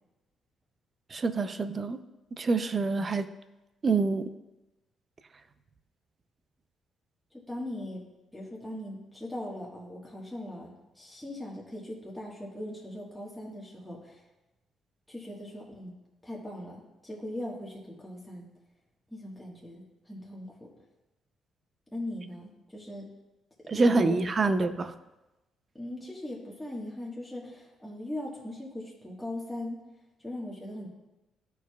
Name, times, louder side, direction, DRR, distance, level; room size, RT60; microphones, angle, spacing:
voice 1, 1.1-2.0 2.4-3.3 3.8-4.3 23.7-24.9, right 3 dB, 35° right, 11 dB, 0.5 m, -26 dB
voice 2, 7.5-8.0 8.3-14.3 15.1-15.9 16.2-18.5 19.1-20.7 21.9-23.1 23.6-24.1 24.4-24.7 25.7-29.8 30.2-30.9, left 1 dB, 5° left, -4 dB, 1.4 m, -40 dB
13.5 x 4.6 x 2.3 m, 1.0 s
cardioid pair, 90°, 0 cm